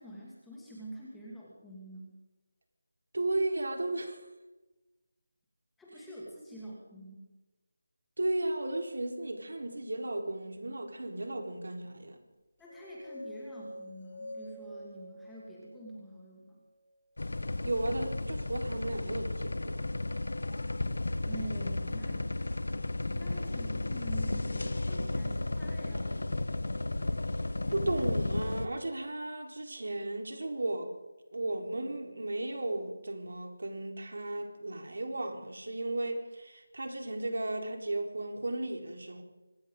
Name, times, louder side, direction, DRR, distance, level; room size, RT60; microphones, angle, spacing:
voice 1, 0.0-2.2 5.8-7.3 12.6-16.6 21.2-22.3 23.1-26.2, right 1 dB, ahead, 2.4 m, -46 dB
voice 2, 3.1-4.3 8.2-12.2 17.6-19.9 27.7-30.9 31.3-39.2, right 2 dB, 75° right, 4.2 m, -35 dB
sound 1, 12.7-16.8, equal, 30° left, 2.4 m, -47 dB
sound 2, 17.2-28.7, left 2 dB, 80° left, 1.4 m, -33 dB
25.0 x 15.0 x 3.9 m
figure-of-eight pair, 180°, 0 cm